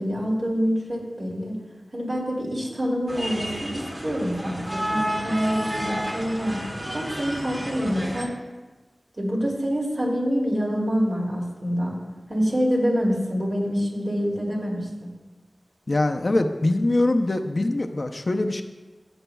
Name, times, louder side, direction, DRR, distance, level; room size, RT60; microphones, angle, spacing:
voice 1, 0.0-1.6 1.9-6.6 6.9-8.4 9.2-12.0 12.3-15.1, equal, 60° right, -4 dB, 2.7 m, -26 dB
sound 1, 3.1-8.2, equal, 40° right, 1.9 m, -31 dB
voice 2, 15.9-18.6, left 2 dB, 60° left, 6 dB, 0.6 m, -23 dB
14.5 x 8.0 x 2.3 m, 1.2 s
wide cardioid pair, 45°, 0 cm